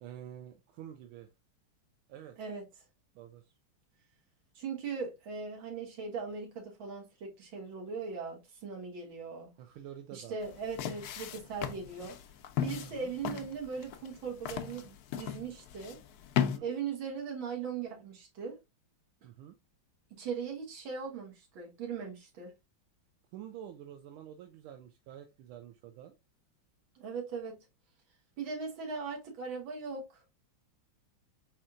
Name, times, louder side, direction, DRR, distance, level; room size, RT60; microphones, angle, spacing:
voice 1, 0.0-1.3 2.1-2.4 3.1-3.5 9.6-10.3 12.8-13.1 16.4-16.6 19.2-19.6 23.3-26.1, right 10 dB, 85° right, 1.5 m, -48 dB
voice 2, 4.6-9.5 10.1-12.2 12.6-16.0 16.6-18.6 20.1-22.5 27.0-27.6 28.4-30.2, right 5 dB, 70° right, 2.1 m, -39 dB
sound 1, 10.4-16.6, left 10 dB, 85° left, 0.8 m, -36 dB
4.3 x 4.3 x 2.4 m
omnidirectional pair, 2.3 m